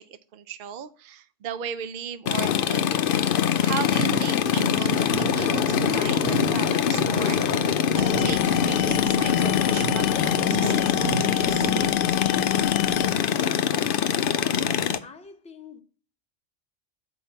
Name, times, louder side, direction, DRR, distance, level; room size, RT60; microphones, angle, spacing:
voice 1, 0.0-2.9 3.6-7.7 7.9-11.7, right 9 dB, 65° right, 0.5 m, -37 dB
sound 1, 2.3-15.0, left 8 dB, 60° left, 0.6 m, -23 dB
sound 2, 3.8-7.7 8.0-12.0, right 6 dB, 85° right, 1.2 m, -34 dB
sound 3, 7.9-13.1, left 12 dB, 80° left, 1.0 m, -28 dB
voice 2, 15.0-15.8, left 5 dB, 5° left, 0.6 m, -45 dB
7.1 x 4.6 x 5.5 m
omnidirectional pair, 1.4 m